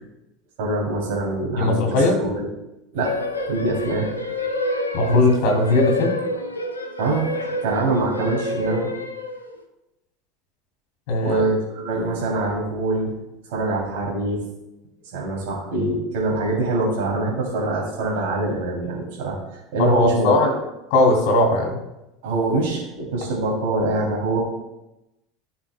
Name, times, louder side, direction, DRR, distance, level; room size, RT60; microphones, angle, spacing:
voice 1, 0.6-2.4 2.9-3.2 3.5-4.1 7.0-7.3 7.6-8.9 11.2-13.1 13.5-14.4 15.1-19.4 19.7-20.5 22.2-24.5, right 2 dB, 60° right, -3 dB, 2.9 m, -24 dB
voice 2, 1.6-2.2 4.9-6.1 11.1-11.4 19.8-20.5 20.9-21.8, left 2 dB, 55° left, 2 dB, 2.7 m, -18 dB
sound 1, 3.0-9.6, left 1 dB, 80° left, 0.7 m, -28 dB
14.5 x 5.9 x 2.3 m, 0.94 s
figure-of-eight pair, 75°, 0 cm